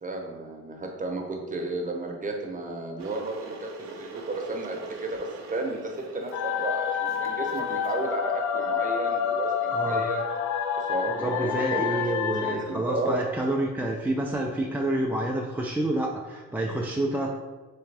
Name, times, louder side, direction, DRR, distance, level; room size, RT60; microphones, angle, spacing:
voice 1, 0.0-10.3 10.8-12.0 12.4-13.2, right 2 dB, 25° right, 2 dB, 0.8 m, -33 dB
Water / Boiling, 3.0-8.1, right 4 dB, 60° right, 0.7 m, -42 dB
sound 1, 6.3-12.6, left 7 dB, 70° left, 0.5 m, -28 dB
voice 2, 9.7-10.0 11.2-17.3, right 1 dB, 5° right, -1 dB, 0.3 m, -28 dB
3.4 x 3.4 x 3.3 m, 1.2 s
cardioid pair, 90°, 30 cm